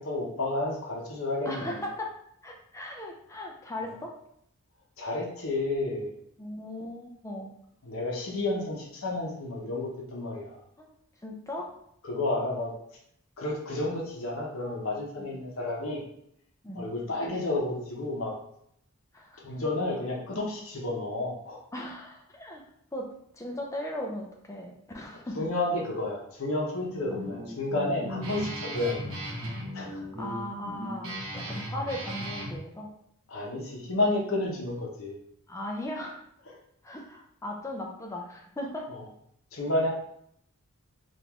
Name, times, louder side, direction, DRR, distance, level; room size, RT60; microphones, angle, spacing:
voice 1, 0.0-1.8 5.0-6.1 7.8-10.6 12.0-12.7 13.4-16.0 16.7-18.3 19.4-21.6 25.4-28.9 29.7-30.0 31.4-31.6 33.3-35.2 38.9-39.0 39.5-39.9, left 2 dB, 65° left, -2 dB, 0.9 m, -31 dB
voice 2, 1.5-2.1 2.4-4.2 6.4-7.5 10.8-10.9 11.2-11.7 15.2-15.3 16.6-16.9 19.1-19.4 21.7-22.6 22.9-25.5 27.1-27.3 30.2-32.9 35.5-36.2 36.8-38.9, left 1 dB, 15° left, 1 dB, 0.4 m, -37 dB
Guitar, 26.8-32.6, equal, 70° right, 1.3 m, -37 dB
3.6 x 2.5 x 3.0 m, 0.70 s
head